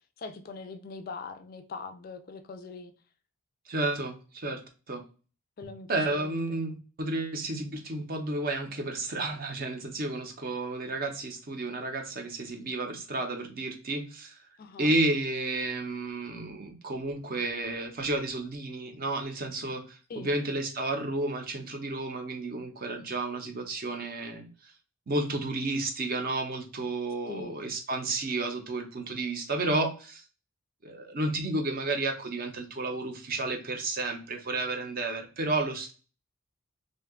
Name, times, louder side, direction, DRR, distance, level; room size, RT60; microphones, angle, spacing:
voice 1, 0.2-2.9 5.6-6.6 14.6-14.9 20.1-20.3 27.3-27.6, left 4 dB, 40° left, 0.3 m, -42 dB
voice 2, 3.7-4.6 4.9-5.0 5.9-14.4 14.8-24.5 25.1-30.2 30.8-35.9, right 2 dB, 40° right, 0.6 m, -32 dB
2.7 x 2.2 x 3.5 m
head